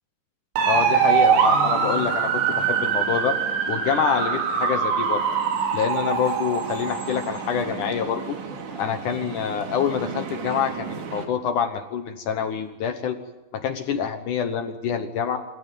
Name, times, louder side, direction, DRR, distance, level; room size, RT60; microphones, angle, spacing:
sound 1, 0.6-11.2, right 6 dB, 75° right, 4.9 m, -24 dB
voice 1, 0.7-3.4 3.7-5.2 5.7-8.4 8.8-13.2 13.5-15.4, left 7 dB, 70° left, 7 dB, 1.9 m, -26 dB
27.5 x 15.0 x 9.2 m, 1.1 s
omnidirectional pair, 5.1 m